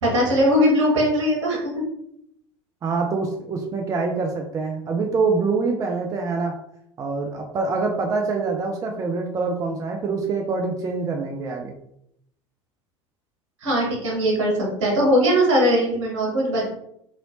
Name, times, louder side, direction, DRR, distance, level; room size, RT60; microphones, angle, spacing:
voice 1, 0.0-1.8 13.6-16.7, equal, 65° right, -2 dB, 1.3 m, -20 dB
voice 2, 2.8-6.6 7.0-11.7, right 4 dB, 20° right, 2 dB, 0.4 m, -25 dB
2.9 x 2.8 x 2.7 m, 0.73 s
figure-of-eight pair, 75°, 16 cm